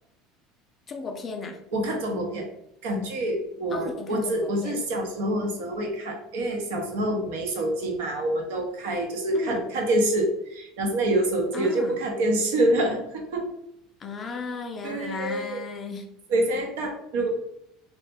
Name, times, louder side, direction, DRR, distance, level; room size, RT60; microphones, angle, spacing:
voice 1, 0.9-1.6 3.7-4.8 9.3-9.6 11.5-12.0 14.0-16.1, left 4 dB, 20° left, 4 dB, 0.3 m, -35 dB
voice 2, 1.7-2.5 2.8-13.5 14.8-15.6 16.3-17.3, right 1 dB, 85° right, 2 dB, 0.7 m, -26 dB
3.0 x 2.1 x 3.3 m, 0.79 s
cardioid pair, 170°, 0 cm